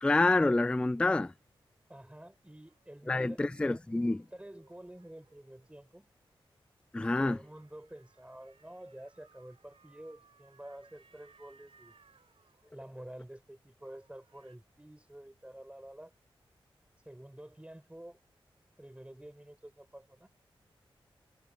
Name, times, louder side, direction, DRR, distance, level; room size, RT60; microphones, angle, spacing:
voice 1, 0.0-1.3 3.1-4.2 6.9-7.4, left 2 dB, 10° left, 0.3 m, -27 dB
sound 1, 1.4-6.1 7.0-13.5 13.8-14.6, right 5 dB, 80° right, 5.5 m, -67 dB
voice 2, 1.9-3.8 4.3-6.1 7.0-12.0 12.7-16.1 17.1-18.2 18.8-20.3, right 1 dB, 10° right, 5.2 m, -49 dB
cardioid pair, 50°, 10 cm